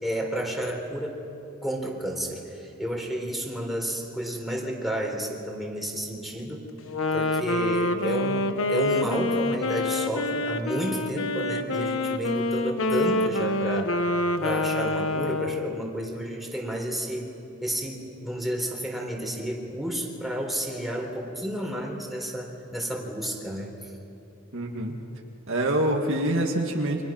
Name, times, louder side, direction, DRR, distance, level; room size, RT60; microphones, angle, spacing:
voice 1, 0.0-1.2 1.6-6.6 7.1-13.9 14.4-17.3 17.6-23.9, equal, ahead, -1 dB, 3.8 m, -31 dB
Wind instrument woodwind instrument, 6.8-15.8, left 2 dB, 65° left, 1.2 m, -26 dB
voice 2, 24.5-25.0 25.5-27.0, right 1 dB, 65° right, 1 dB, 2.3 m, -25 dB
30.0 x 26.0 x 6.0 m, 2.7 s
head